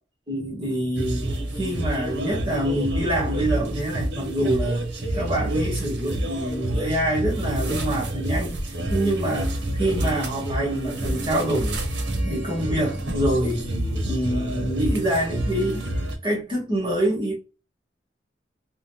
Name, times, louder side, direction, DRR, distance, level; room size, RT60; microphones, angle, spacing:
voice 1, 0.3-1.3 1.5-4.8 5.1-8.5 8.9-9.5 9.8-11.8 12.2-13.7 14.0-15.9 16.2-17.4, right 1 dB, 30° right, 1.2 m, -26 dB
sound 1, 1.0-16.2, right 1 dB, 70° right, 0.9 m, -28 dB
3.6 x 2.2 x 2.7 m
head